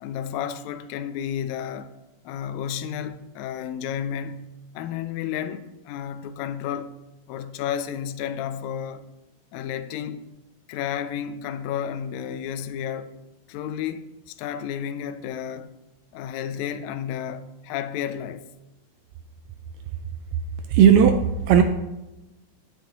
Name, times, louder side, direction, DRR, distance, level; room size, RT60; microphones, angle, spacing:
voice 1, 0.0-1.9 2.2-4.5 4.7-6.9 7.3-9.0 9.5-10.2 10.7-13.2 13.5-15.7 16.1-18.4, left 9 dB, 80° left, 1.6 m, -32 dB
voice 2, 20.7-21.6, right 8 dB, 80° right, 1.6 m, -15 dB
9.3 x 8.6 x 2.9 m
omnidirectional pair, 3.7 m